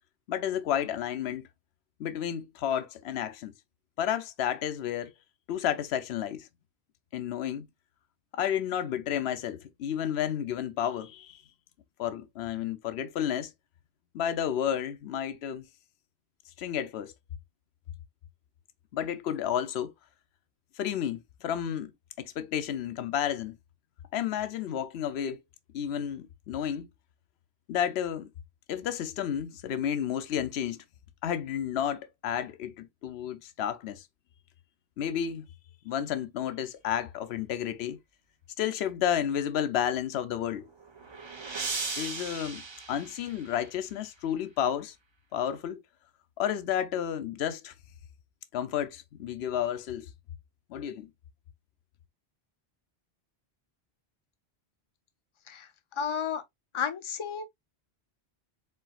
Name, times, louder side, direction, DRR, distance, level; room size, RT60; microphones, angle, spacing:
voice 1, 0.3-1.5 2.0-3.5 4.0-5.1 5.5-6.5 7.1-7.7 8.3-11.4 12.0-13.5 14.1-15.6 16.6-17.1 18.9-19.9 20.8-21.9 22.2-23.6 24.1-25.4 25.7-26.9 27.7-28.3 28.7-30.8 31.2-34.0 35.0-35.5 35.8-38.0 38.6-40.7 42.0-42.6 42.9-44.9 45.3-45.8 46.4-47.7 48.5-50.1 50.7-51.1, left 9 dB, 80° left, 0.9 m, -31 dB
sound 1, 40.5-43.9, right 4 dB, 30° right, 0.6 m, -38 dB
voice 2, 56.0-56.4 56.7-57.4, left 7 dB, 35° left, 0.6 m, -32 dB
4.4 x 4.0 x 2.3 m
omnidirectional pair, 1.1 m